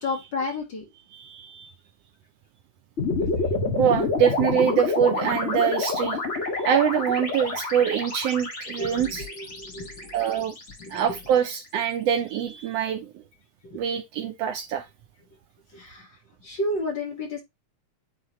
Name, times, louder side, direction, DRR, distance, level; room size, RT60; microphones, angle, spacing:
voice 1, 0.0-0.8 8.8-10.2 10.8-11.2 13.6-13.8 15.7-17.4, left 2 dB, 45° left, 2.1 m, -32 dB
voice 2, 1.1-1.7 3.8-6.2 6.6-9.2 10.1-10.6 10.9-13.1 13.7-14.8, right 8 dB, 75° right, 1.6 m, -24 dB
sound 1, 3.0-11.3, left 3 dB, 30° left, 1.7 m, -28 dB
9.5 x 3.6 x 3.1 m
omnidirectional pair, 3.3 m